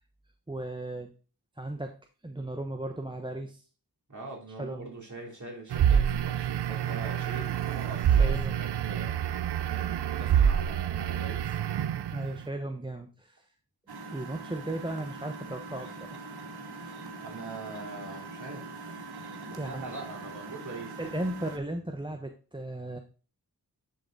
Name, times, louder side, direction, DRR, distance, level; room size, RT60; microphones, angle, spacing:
voice 1, 0.5-1.1 1.6-1.9 2.2-3.6 4.6-4.9 8.2-8.6 12.1-13.4 14.1-16.1 19.5-19.9 21.0-23.0, right 1 dB, 10° right, 4 dB, 0.9 m, -36 dB
voice 2, 4.1-11.5 17.2-19.0 19.5-21.1, right 2 dB, 45° right, -3 dB, 3.4 m, -43 dB
sound 1, 5.7-12.4, right 9 dB, 90° right, 0.5 m, -27 dB
sound 2, 5.8-5.9 6.4-9.5, equal, 45° left, 2.1 m, -56 dB
Engine, 13.9-21.6, right 3 dB, 70° right, 1.3 m, -42 dB
10.5 x 3.8 x 3.9 m, 0.37 s
cardioid pair, 45°, 40 cm